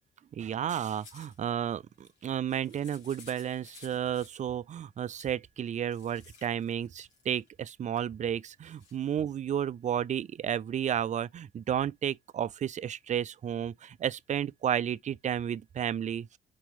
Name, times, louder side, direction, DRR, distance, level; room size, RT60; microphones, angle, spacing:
voice 1, 0.3-16.4, right 9 dB, 40° right, 0.4 m, -32 dB
sound 1, 0.6-1.4 1.9-4.5 5.2-5.3 5.8-7.5 8.0-8.1 8.6-9.1, left 4 dB, 85° left, 3.1 m, -56 dB
5.2 x 3.0 x 3.4 m
cardioid pair, 80°, 19 cm